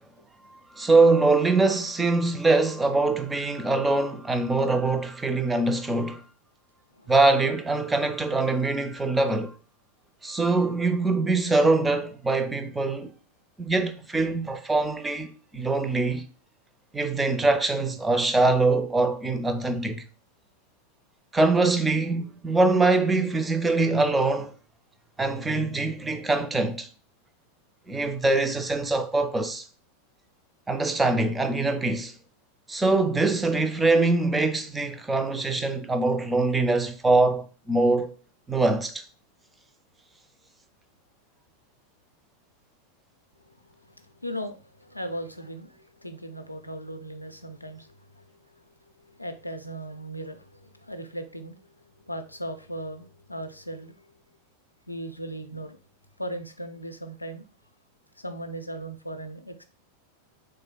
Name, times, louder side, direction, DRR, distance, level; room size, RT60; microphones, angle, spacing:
voice 1, 0.8-6.2 7.1-9.5 10.2-13.1 13.6-16.3 16.9-20.0 21.3-24.5 25.2-26.9 27.9-29.7 30.7-32.1 32.7-38.1 38.5-39.0, right 3 dB, 10° right, 0.4 m, -23 dB
voice 2, 43.4-48.2 48.5-48.7 49.0-51.7 52.0-54.0 54.9-55.8 56.2-57.4 58.2-59.6, right 1 dB, 85° left, 0.4 m, -38 dB
3.5 x 3.2 x 2.2 m
figure-of-eight pair, 90°, 0 cm